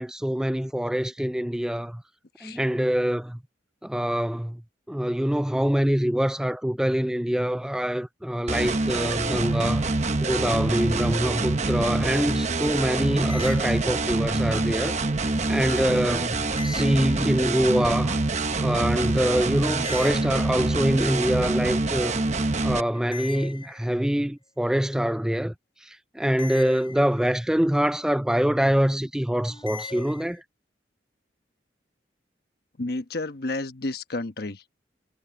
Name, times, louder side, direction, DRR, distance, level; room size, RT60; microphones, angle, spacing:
voice 1, 0.0-2.0 2.4-3.4 3.8-4.6 4.9-9.9 10.2-14.9 15.2-16.4 16.6-18.1 18.6-22.2 22.6-25.5 26.2-30.4, equal, 5° right, 0.3 m, -25 dB
sound 1, 8.5-22.8, right 2 dB, 40° right, 1.0 m, -26 dB
sound 2, 13.1-14.4 16.4-17.7 19.7-21.0 22.9-24.2 26.2-27.5 29.5-30.4, left 4 dB, 30° left, 7.3 m, -41 dB
voice 2, 32.8-34.6, left 2 dB, 55° left, 1.1 m, -31 dB
head